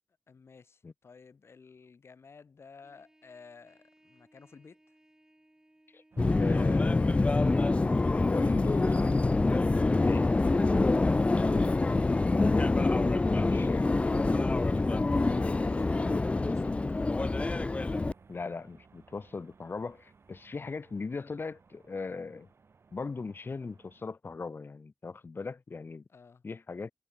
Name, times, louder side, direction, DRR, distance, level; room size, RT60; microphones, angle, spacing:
voice 1, 0.3-4.8 14.2-17.3 26.1-26.4, left 5 dB, 80° left, 3.4 m, -53 dB
Trumpet, 2.8-7.9, right 1 dB, 15° right, 7.5 m, -64 dB
sound 1, 6.1-24.1, right 5 dB, 75° right, 2.9 m, -57 dB
Subway metro underground, 6.2-18.1, left 3 dB, 30° left, 0.4 m, -26 dB
voice 2, 6.3-7.5 8.1-10.3 10.7-11.9 12.3-13.9 18.3-22.5 22.9-26.0 26.4-26.9, left 4 dB, 55° left, 1.4 m, -39 dB
wide cardioid pair, 95°, 4 cm